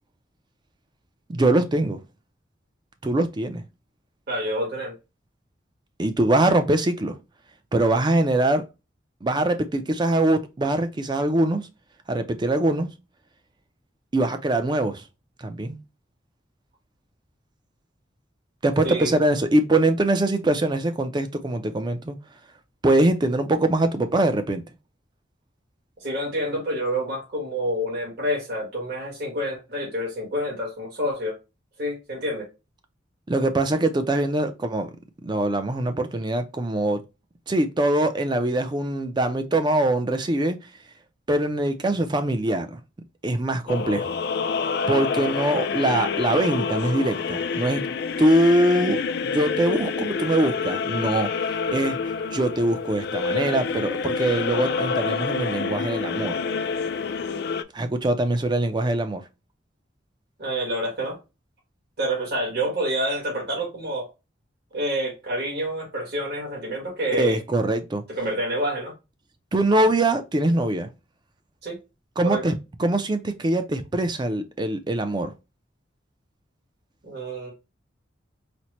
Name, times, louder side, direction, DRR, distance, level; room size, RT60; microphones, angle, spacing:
voice 1, 1.3-2.0 3.0-3.6 6.0-7.2 7.7-8.6 9.2-11.6 12.1-12.9 14.1-15.0 15.4-15.8 18.6-22.2 22.8-24.6 33.3-34.9 35.2-37.0 37.5-40.6 41.3-42.8 43.2-44.1 44.9-47.9 48.2-51.3 51.7-52.0 52.3-56.4 57.7-59.2 67.1-68.0 69.5-70.9 72.2-72.5 72.8-75.3, right 1 dB, 25° right, 0.4 m, -23 dB
voice 2, 4.3-4.9 18.8-19.1 26.0-31.3 31.8-32.5 60.4-61.2 62.0-64.1 64.7-67.4 68.1-68.9 71.6-71.8 72.2-72.5 77.0-77.5, equal, 60° right, 1.5 m, -28 dB
sound 1, 43.7-57.6, left 5 dB, 55° left, 0.3 m, -27 dB
4.2 x 2.1 x 2.9 m
head